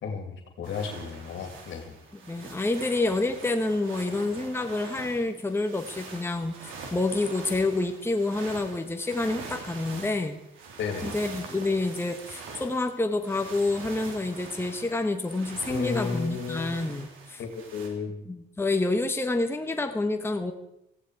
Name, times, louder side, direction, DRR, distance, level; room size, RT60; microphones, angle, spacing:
voice 1, 0.0-1.9 10.8-11.2 15.7-16.8 17.4-18.2, left 5 dB, 70° left, 5 dB, 2.5 m, -33 dB
sound 1, 0.6-17.9, right 4 dB, 90° right, 3.4 m, -44 dB
voice 2, 2.3-10.4 11.0-17.4 18.3-20.5, left 2 dB, 10° left, 6 dB, 1.2 m, -28 dB
18.5 x 15.5 x 4.8 m, 0.84 s
cardioid pair, 90°, 20 cm